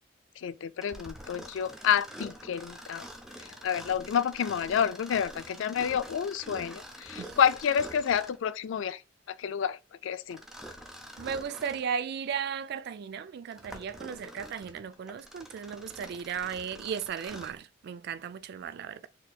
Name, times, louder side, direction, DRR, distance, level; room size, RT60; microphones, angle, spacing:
voice 1, 0.4-3.1 3.4-9.0 9.3-10.4, left 8 dB, 75° left, 0.3 m, -29 dB
Mechanisms, 0.8-8.5 10.3-11.9 12.5-12.6 13.3-17.6, equal, ahead, 0.5 m, -46 dB
voice 2, 11.2-19.1, right 7 dB, 55° right, 0.3 m, -36 dB
4.2 x 2.8 x 2.2 m
head